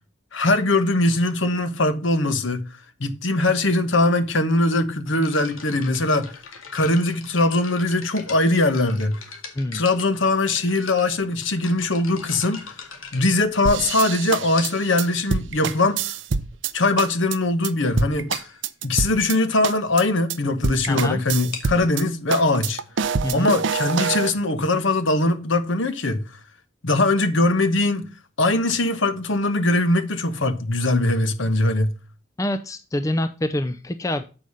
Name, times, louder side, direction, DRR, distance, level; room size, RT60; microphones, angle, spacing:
voice 1, 0.3-2.6 3.0-6.3 6.7-9.2 9.7-12.7 13.1-16.1 16.7-18.5 18.8-22.8 23.3-26.2 26.8-28.1 28.4-31.9, left 2 dB, 70° left, 1.1 m, -21 dB
sound 1, 5.1-14.0 14.6-15.0 15.8-15.9 16.5-16.6 16.9-17.1 17.4-17.5 17.8-17.9 18.3-18.6 21.3-24.8, left 5 dB, 85° left, 2.0 m, -41 dB
sound 2, 13.6-16.7 17.0-17.4 17.6-17.7 18.0-19.4 19.6-20.0 20.3-20.4 20.6-22.0 22.3-24.3, right 5 dB, 65° right, 0.5 m, -26 dB
voice 2, 20.9-21.2 23.2-23.5 32.4-34.2, left 1 dB, 15° left, 0.4 m, -26 dB
7.7 x 4.9 x 5.4 m
head